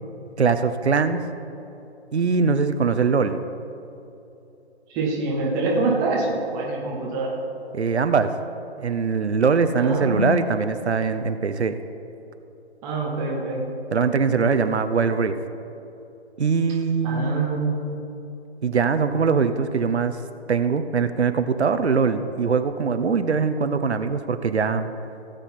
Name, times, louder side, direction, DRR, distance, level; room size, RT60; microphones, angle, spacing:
voice 1, 0.4-1.2 2.1-3.4 7.7-8.3 8.8-11.8 13.9-15.4 16.4-17.4 18.6-20.2 20.5-24.9, right 5 dB, 75° right, 10 dB, 0.9 m, -22 dB
voice 2, 4.9-7.3 9.8-10.3 12.8-13.7 17.0-17.9, right 3 dB, 10° right, -3 dB, 0.7 m, -25 dB
16.5 x 8.2 x 4.3 m, 2.8 s
figure-of-eight pair, 150°, 33 cm